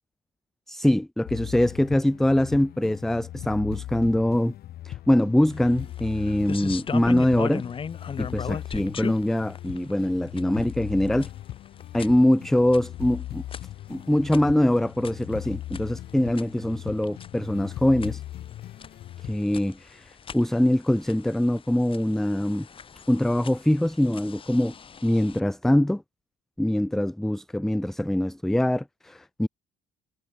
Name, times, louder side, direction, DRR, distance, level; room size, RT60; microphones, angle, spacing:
voice 1, 0.7-4.5 4.8-7.6 8.2-11.3 11.9-13.4 13.9-18.2 19.2-22.7 23.1-24.7 25.0-26.0 26.6-29.5, left 1 dB, ahead, 0.4 m, -23 dB
sound 1, 1.3-19.4, left 13 dB, 65° left, 1.6 m, -39 dB
sound 2, 5.5-25.4, left 6 dB, 30° left, 1.1 m, -40 dB
cardioid pair, 110°, 17 cm